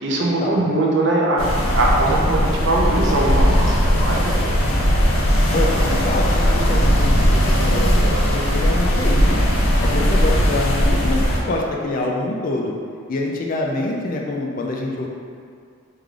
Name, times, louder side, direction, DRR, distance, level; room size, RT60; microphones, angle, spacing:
voice 1, 0.0-4.3, right 2 dB, 55° right, -2 dB, 0.5 m, -21 dB
sound 1, 1.4-11.4, equal, 80° left, 0.6 m, -18 dB
voice 2, 5.5-9.5 9.8-12.7 13.1-15.1, left 2 dB, 40° left, -1 dB, 0.3 m, -25 dB
3.2 x 2.3 x 3.6 m, 2.2 s
head